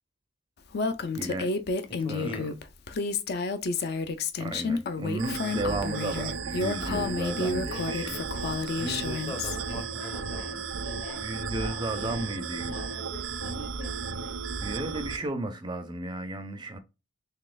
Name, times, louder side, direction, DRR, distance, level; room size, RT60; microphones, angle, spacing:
Female speech woman speaking, 0.7-9.6, left 4 dB, 55° left, 0.4 m, -30 dB
voice 1, 1.1-1.5 2.1-2.5 4.4-8.2 11.2-12.9 13.3-13.5 14.6-16.8, right 2 dB, 20° right, 0.4 m, -34 dB
voice 2, 1.9-2.5 8.8-10.6, left 1 dB, 25° left, 0.8 m, -39 dB
sound 1, 5.2-15.2, right 5 dB, 90° right, 0.4 m, -35 dB
Subway metro underground, 5.7-15.3, left 1 dB, 75° left, 1.1 m, -46 dB
4.1 x 3.2 x 2.3 m
head